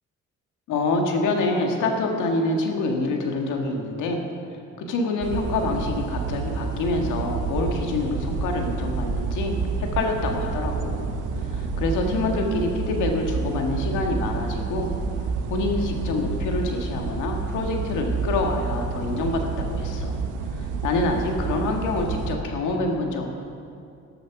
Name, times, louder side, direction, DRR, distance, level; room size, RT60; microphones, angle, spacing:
voice 1, 0.7-4.2 4.8-11.1 11.5-14.9 15.5-20.2 20.6-23.3, left 2 dB, 90° left, 2 dB, 1.8 m, -26 dB
sound 1, 5.2-22.4, right 4 dB, 85° right, 1.2 m, -29 dB
13.0 x 11.5 x 5.9 m, 2.5 s
cardioid pair, 90°, 30 cm